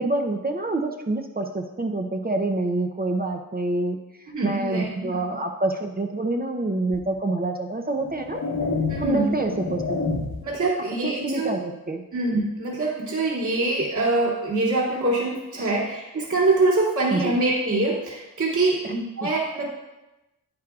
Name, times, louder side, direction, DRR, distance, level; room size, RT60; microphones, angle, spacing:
voice 1, 0.0-8.4 9.0-10.0 10.6-10.7 11.0-12.0 15.6-15.8 17.1-17.4 18.8-18.9 19.2-19.3, right 2 dB, 25° right, 3 dB, 0.6 m, -27 dB
voice 2, 4.3-5.1 8.9-9.5 10.4-11.5 12.1-19.7, right 2 dB, 55° right, -6 dB, 2.7 m, -24 dB
sound 1, 6.9-7.1 7.8-10.6, left 3 dB, 70° left, 1.5 m, -29 dB
9.6 x 9.0 x 2.4 m, 0.99 s
wide cardioid pair, 90°, 36 cm